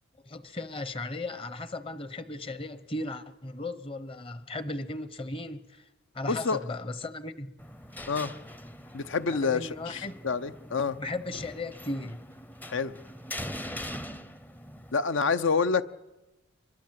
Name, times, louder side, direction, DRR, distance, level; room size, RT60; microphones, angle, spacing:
voice 1, 0.2-5.8 6.1-7.5 9.3-10.1 11.0-12.2, left 2 dB, 25° left, 13 dB, 1.0 m, -36 dB
voice 2, 6.2-6.6 8.1-8.3 8.9-11.0 12.7-12.9 14.9-15.8, left 5 dB, 65° left, 13 dB, 0.8 m, -27 dB
sound 1, 7.6-14.9, equal, 10° left, 0.7 m, -42 dB
24.5 x 21.5 x 7.6 m, 1.0 s
head